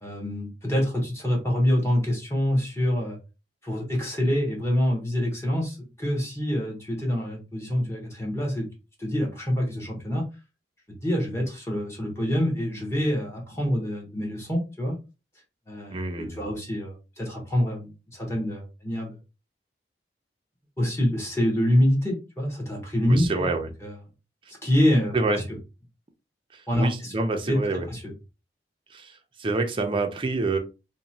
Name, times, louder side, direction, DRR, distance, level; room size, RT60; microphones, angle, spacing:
voice 1, 0.0-3.2 3.6-8.7 9.0-10.2 11.0-15.0 15.7-19.1 20.8-23.5 23.8-23.9 24.6-25.2 26.7-27.1 27.5-27.6 27.9-28.1, equal, 15° left, -1 dB, 0.9 m, -26 dB
voice 2, 15.9-16.4 23.1-23.7 25.1-25.5 26.5-27.9 28.9-30.6, right 3 dB, 30° right, 5 dB, 0.4 m, -27 dB
2.9 x 2.1 x 2.6 m, 0.29 s
head